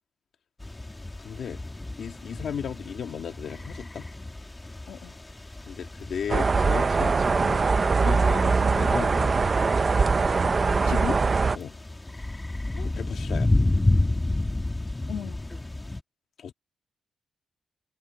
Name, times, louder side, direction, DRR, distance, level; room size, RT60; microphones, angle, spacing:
sound 1, 0.6-16.0, left 2 dB, 15° left, 1.4 m, -31 dB
voice 1, 1.2-1.6 2.0-4.1 5.7-7.7 8.0-9.7 11.6-11.8 12.8-13.5 16.4-16.5, left 7 dB, 60° left, 1.7 m, -36 dB
voice 2, 4.9-5.2 10.8-11.3 12.8-12.9 15.1-15.4, left 9 dB, 85° left, 1.9 m, -35 dB
sound 2, 6.3-11.6, right 4 dB, 30° right, 0.6 m, -22 dB
wide cardioid pair, 160°, 0 cm